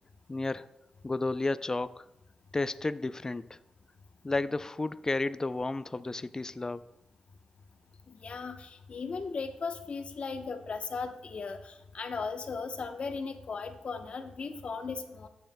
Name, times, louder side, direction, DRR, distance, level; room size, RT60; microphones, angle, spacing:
voice 1, 0.3-0.7 1.0-2.1 2.5-3.6 4.2-6.9, left 2 dB, 25° left, 14 dB, 0.4 m, -32 dB
voice 2, 8.1-15.3, left 4 dB, 55° left, 6 dB, 1.0 m, -37 dB
14.5 x 7.9 x 2.3 m, 0.88 s
cardioid pair, 55°, 2 cm